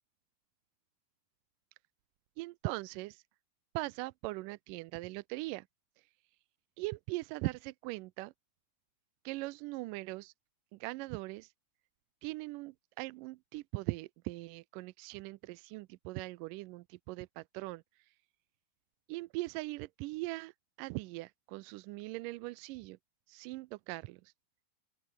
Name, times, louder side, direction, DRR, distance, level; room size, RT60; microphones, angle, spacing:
voice 1, 2.4-3.2 3.7-5.7 6.8-8.3 9.3-10.3 10.7-11.5 12.2-17.8 19.1-20.5 20.8-23.0 23.3-24.2, right 21 dB, 80° right, 2.0 m, -40 dB
open air
omnidirectional pair, 4.1 m